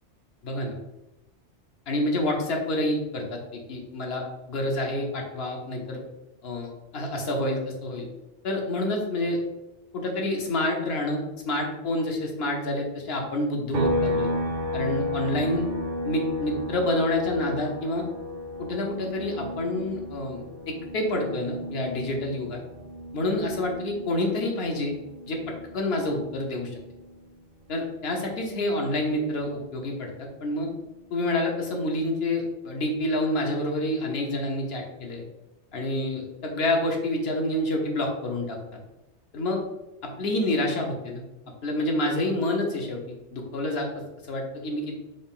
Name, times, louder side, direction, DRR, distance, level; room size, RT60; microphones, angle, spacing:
voice 1, 0.4-0.8 1.9-6.0 6.4-8.1 8.4-9.4 9.9-14.3 14.7-15.6 16.0-18.0 18.6-20.4 20.9-22.6 23.1-24.9 25.3-25.4 25.7-26.8 27.7-30.7 31.1-35.2 35.7-38.6 39.3-39.6 40.0-41.2 41.6-45.0, left 1 dB, 70° left, 1 dB, 0.9 m, -28 dB
sound 1, 13.7-27.3 27.6-29.8, left 1 dB, 50° right, 0.6 m, -34 dB
3.8 x 2.3 x 3.6 m, 0.98 s
omnidirectional pair, 1.1 m